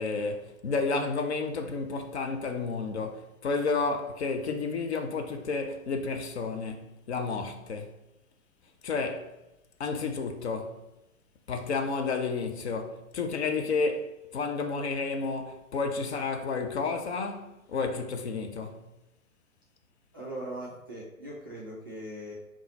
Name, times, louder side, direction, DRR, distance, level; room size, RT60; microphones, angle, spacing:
voice 1, 0.0-7.9 8.8-9.3 9.8-10.8 11.5-18.8, left 4 dB, 50° left, 0.6 m, -31 dB
voice 2, 20.1-22.3, right 1 dB, 20° right, 0.3 m, -40 dB
3.8 x 2.4 x 4.1 m
figure-of-eight pair, 120°, 43 cm